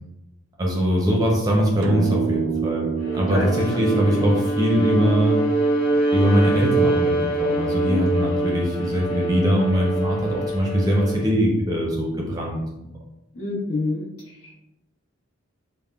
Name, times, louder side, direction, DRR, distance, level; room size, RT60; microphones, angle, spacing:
voice 1, 0.6-5.4 6.1-12.9, equal, 15° right, -2 dB, 0.5 m, -22 dB
sound 1, 1.8-6.4, right 8 dB, 90° right, 0.4 m, -29 dB
Bowed string instrument, 3.0-11.4, right 2 dB, 40° left, 1.1 m, -24 dB
voice 2, 13.3-14.1 14.4-14.5, left 2 dB, 75° left, -5 dB, 0.9 m, -26 dB
3.4 x 2.1 x 2.2 m, 0.90 s
head